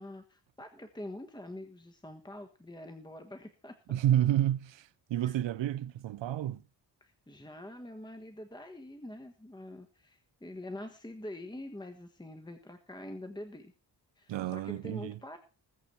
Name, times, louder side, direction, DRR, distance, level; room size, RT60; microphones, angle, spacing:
voice 1, 0.0-3.7 5.2-5.3 7.0-13.7 14.2-15.4, left 1 dB, 10° left, 1.3 m, -45 dB
voice 2, 3.9-6.6 14.3-15.2, right 12 dB, 75° right, 0.6 m, -30 dB
20.0 x 8.1 x 4.4 m
wide cardioid pair, 120°, 44 cm